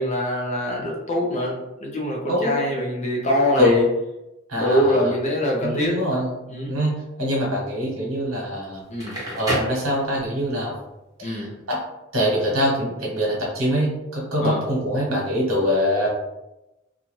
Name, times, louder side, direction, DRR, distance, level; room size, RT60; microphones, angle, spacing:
voice 1, 0.0-1.6 1.8-3.8 4.6-6.0 6.5-6.8 8.9-9.2 11.2-11.5 14.4-14.6, left 1 dB, 35° left, -1 dB, 0.6 m, -23 dB
voice 2, 2.3-2.8 3.6-3.8 4.5-5.1 5.6-6.3 6.7-8.8 9.3-10.7 11.2-11.8 12.1-16.1, equal, 75° right, -3 dB, 1.1 m, -24 dB
Crackle, 8.8-10.5, right 1 dB, 20° right, 0.9 m, -29 dB
2.6 x 2.3 x 3.0 m, 0.95 s
head